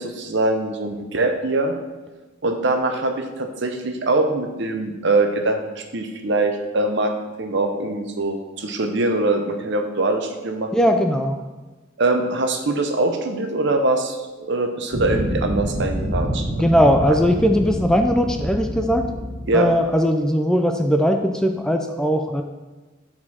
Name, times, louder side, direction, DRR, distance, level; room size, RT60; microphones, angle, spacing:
voice 1, 0.0-1.8 2.4-7.1 7.4-10.9 12.0-16.5 17.1-17.2 19.5-19.7, right 2 dB, 65° right, 5 dB, 0.8 m, -23 dB
voice 2, 10.7-11.4 16.6-19.0 19.5-22.4, equal, 5° left, 4 dB, 0.4 m, -19 dB
sound 1, 14.9-19.9, equal, 30° right, 1.5 m, -27 dB
8.5 x 4.5 x 4.3 m, 1.2 s
head